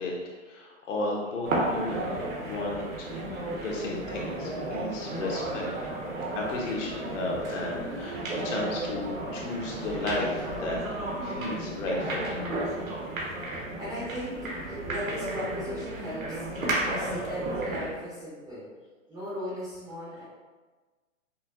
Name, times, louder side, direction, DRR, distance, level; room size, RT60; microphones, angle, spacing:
voice 1, 0.0-3.1 3.6-5.7 6.3-10.8 11.2-12.4, left 2 dB, 65° left, -2 dB, 1.1 m, -33 dB
sound 1, 1.5-18.0, right 1 dB, 85° right, 1.3 m, -33 dB
voice 2, 12.9-18.7 19.1-20.2, equal, 10° right, -9 dB, 0.5 m, -38 dB
5.4 x 2.1 x 2.5 m, 1.3 s
hypercardioid pair, 135°, 40 cm